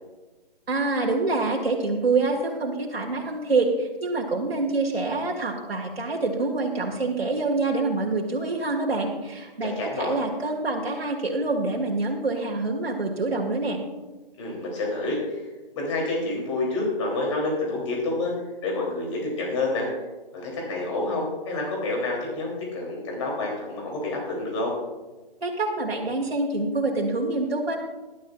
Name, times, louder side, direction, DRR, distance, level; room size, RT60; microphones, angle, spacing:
voice 1, 0.7-13.8 25.4-27.8, right 3 dB, 85° right, -1 dB, 2.3 m, -26 dB
voice 2, 9.6-10.2 14.4-15.4 15.7-18.3 18.6-19.9 20.3-24.7, left 2 dB, 30° left, -2 dB, 3.2 m, -28 dB
17.5 x 12.0 x 2.5 m, 1.2 s
hypercardioid pair, 160°, 29 cm